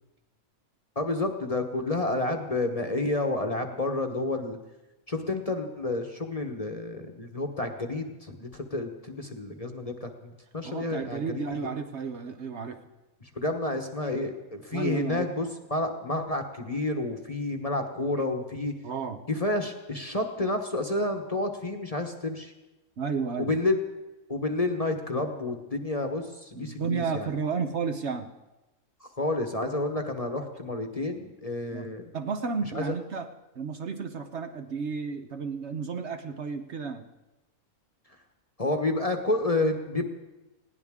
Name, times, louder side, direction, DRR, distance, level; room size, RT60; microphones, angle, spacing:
voice 1, 1.0-4.6 5.1-11.4 13.2-18.7 19.3-22.5 23.4-23.8 24.3-27.3 29.2-32.1 32.7-32.9 38.6-40.1, left 2 dB, 30° left, 4 dB, 1.0 m, -30 dB
voice 2, 10.6-12.8 14.1-14.2 14.7-15.3 18.8-19.2 23.0-23.5 26.6-28.3 31.7-33.3 33.5-37.0, right 5 dB, 55° right, 7 dB, 1.1 m, -32 dB
20.0 x 17.0 x 3.6 m, 1.0 s
omnidirectional pair, 1.5 m